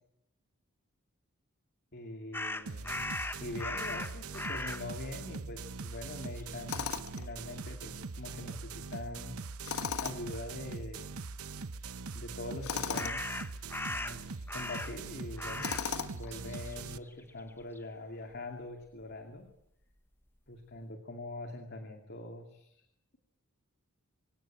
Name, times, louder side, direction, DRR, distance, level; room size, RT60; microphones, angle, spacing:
voice 1, 1.9-3.0 3.4-6.9 7.2-9.4 10.0-11.2 12.1-13.2 13.9-15.7 16.1-19.5 20.5-22.9, left 2 dB, 50° left, 4 dB, 2.5 m, -43 dB
sound 1, 2.3-4.9 5.7-5.9 6.2-7.1 12.9-15.1 15.4-15.9 16.2-17.8, left 2 dB, 10° left, 1.2 m, -39 dB
sound 2, 2.7-17.0, right 4 dB, 75° right, 0.9 m, -42 dB
Tools, 6.7-7.3 9.6-10.4 12.6-13.2 15.6-16.3, left 6 dB, 80° left, 1.4 m, -36 dB
25.5 x 17.0 x 8.8 m, 0.78 s
head